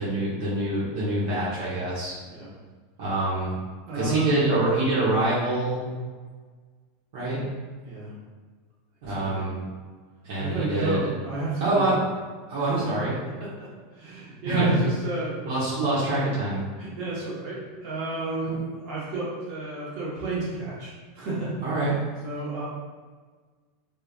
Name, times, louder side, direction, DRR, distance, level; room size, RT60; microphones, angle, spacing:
voice 1, 0.0-2.2 3.0-3.6 3.9-5.9 7.1-7.4 9.0-9.6 10.2-11.0 11.6-12.0 12.5-13.1 14.5-14.8 15.4-16.6 18.4-18.5 21.6-21.9, right 2 dB, 70° right, -8 dB, 1.2 m, -25 dB
voice 2, 3.8-4.4 7.8-8.1 9.0-9.5 10.4-11.9 12.6-12.8 13.4-15.4 16.8-21.6 22.2-22.6, right 3 dB, 50° right, -7 dB, 1.4 m, -32 dB
3.5 x 3.4 x 2.4 m, 1.5 s
supercardioid pair, 160°, 0 cm